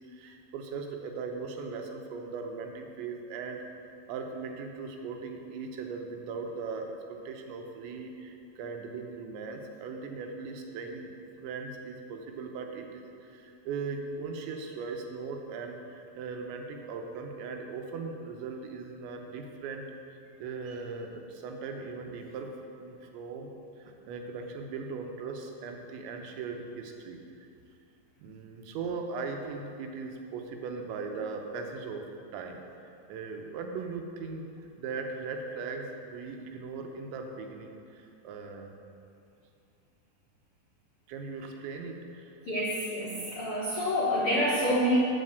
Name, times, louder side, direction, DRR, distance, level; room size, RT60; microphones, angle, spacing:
voice 1, 0.1-3.6 4.1-11.1 11.4-19.8 20.4-22.5 22.8-23.5 23.8-27.5 28.2-32.0 32.3-32.6 33.1-34.5 34.8-38.7 41.1-42.3, right 4 dB, 85° right, 3 dB, 3.2 m, -39 dB
voice 2, 42.5-45.0, equal, 85° left, -7 dB, 1.2 m, -27 dB
13.0 x 4.8 x 7.9 m, 2.6 s
omnidirectional pair, 5.2 m